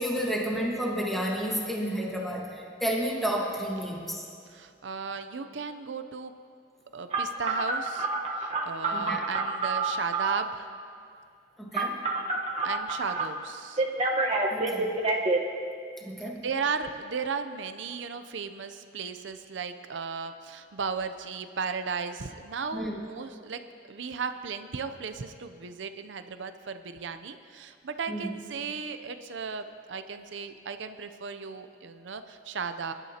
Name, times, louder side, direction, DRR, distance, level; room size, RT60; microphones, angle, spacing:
voice 1, 0.0-4.2 8.9-9.2 11.6-12.0 14.5-15.0 16.0-16.5 22.7-23.0 28.1-28.4, equal, ahead, -3 dB, 1.4 m, -31 dB
voice 2, 4.5-6.3 6.9-8.1 8.3-10.7 12.6-13.8 16.4-23.6 23.9-32.9, right 5 dB, 75° right, 9 dB, 0.6 m, -35 dB
Telephone, 7.1-10.5 11.7-13.3 13.8-15.4, right 3 dB, 35° right, 1.2 m, -28 dB
22.5 x 12.0 x 2.9 m, 2.3 s
head